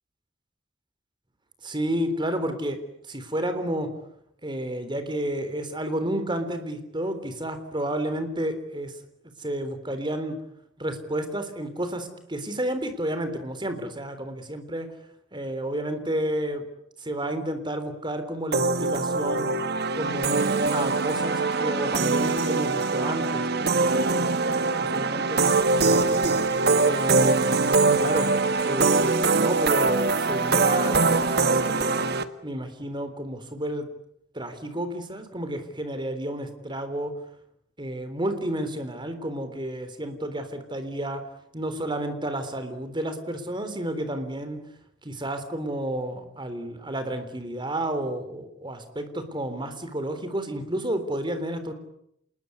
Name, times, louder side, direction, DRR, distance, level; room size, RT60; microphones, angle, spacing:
voice 1, 1.6-2.8 3.1-3.9 4.4-8.9 9.4-10.4 10.8-14.9 15.3-16.6 17.0-19.5 19.9-26.4 26.8-28.3 28.6-32.2 32.4-33.9 34.3-37.1 37.8-41.2 41.5-44.6 45.0-51.7, right 1 dB, 25° right, 9 dB, 3.7 m, -31 dB
sound 1, 18.5-32.2, right 3 dB, 60° right, 1.6 m, -23 dB
27.5 x 21.0 x 9.8 m, 0.76 s
head